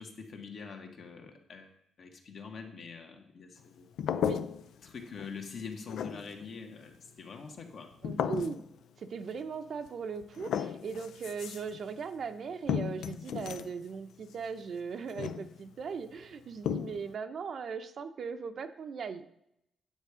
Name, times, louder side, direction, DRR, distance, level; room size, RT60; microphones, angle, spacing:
voice 1, 0.0-3.9 4.8-7.9, left 5 dB, 55° left, 3 dB, 1.5 m, -45 dB
sound 1, 4.0-4.9 5.2-5.6 5.9-6.5 8.0-8.7 9.9-10.0 10.2-11.8 12.7-13.8 15.1-15.8 16.6-17.1, left 8 dB, 80° left, 0.4 m, -34 dB
voice 2, 4.1-4.5 8.0-8.6 9.0-19.4, right 5 dB, 50° right, 9 dB, 0.6 m, -39 dB
9.2 x 7.0 x 5.0 m, 0.78 s
cardioid pair, 145°, 0 cm